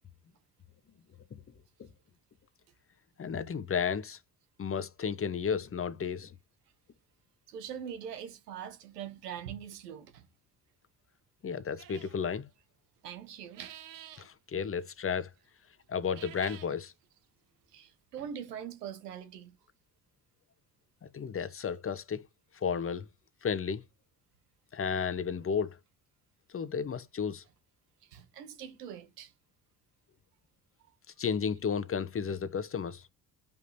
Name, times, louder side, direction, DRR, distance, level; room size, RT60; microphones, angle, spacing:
voice 1, 3.2-4.2 4.6-6.3 11.4-12.5 14.2-15.3 15.9-16.9 21.1-22.2 22.6-23.0 23.4-23.8 24.7-25.8 26.5-27.4 31.2-33.0, left 6 dB, 30° left, 1.0 m, -33 dB
voice 2, 7.5-10.3 13.0-13.8 17.7-19.5 28.0-29.3, right 8 dB, 80° right, 1.1 m, -43 dB
sound 1, 11.8-12.2 13.4-14.3 16.0-16.7, right 11 dB, 45° right, 1.0 m, -49 dB
10.5 x 5.2 x 2.7 m
figure-of-eight pair, 50°, 46 cm